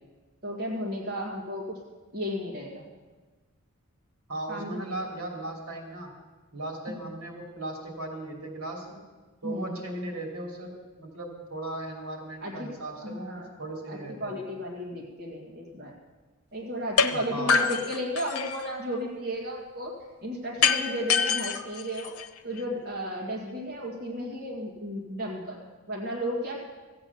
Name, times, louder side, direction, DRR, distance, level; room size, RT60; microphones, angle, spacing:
voice 1, 0.4-1.8 2.1-2.9 4.5-5.0 6.9-7.2 9.4-9.8 12.4-13.5 13.9-15.9 16.5-19.9 20.2-22.1 22.4-26.6, equal, 45° right, -3 dB, 1.9 m, -34 dB
voice 2, 4.3-6.1 6.5-9.0 9.4-10.7 11.0-14.4 17.1-17.6, right 1 dB, 85° right, 1 dB, 3.0 m, -37 dB
sound 1, 17.0-17.1 17.5-18.7 20.6-22.6, left 6 dB, 75° left, 0.8 m, -25 dB
14.5 x 8.7 x 7.0 m, 1.3 s
head